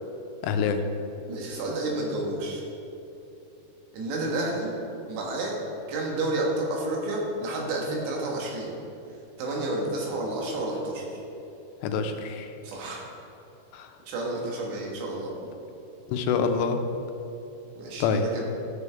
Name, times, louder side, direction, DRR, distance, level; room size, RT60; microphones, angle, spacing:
voice 1, 0.4-0.8 11.8-12.5 13.7-13.9 16.1-16.8 18.0-18.2, left 6 dB, 90° left, 6 dB, 2.8 m, -26 dB
voice 2, 1.3-2.6 3.9-4.7 5.1-5.6 5.9-8.7 9.4-11.2 12.6-13.1 14.1-15.3 17.8-18.4, right 2 dB, 90° right, -2 dB, 3.8 m, -30 dB
13.5 x 8.1 x 3.5 m, 2.9 s
omnidirectional pair, 4.8 m